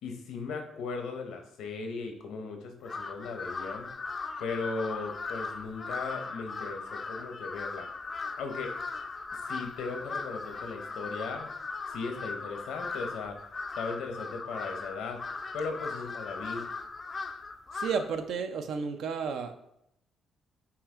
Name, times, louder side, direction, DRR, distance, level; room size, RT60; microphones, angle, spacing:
voice 1, 0.0-3.9 4.4-7.9 8.4-8.7 9.5-11.5 11.9-13.4 13.8-15.2 15.5-16.7, left 4 dB, 85° left, 4 dB, 0.8 m, -37 dB
Crow, 2.8-18.2, left 4 dB, 35° left, 0.3 m, -38 dB
voice 2, 17.7-19.7, right 6 dB, 75° right, 7 dB, 0.5 m, -32 dB
5.7 x 2.4 x 3.6 m, 0.76 s
cardioid pair, 100°, 0 cm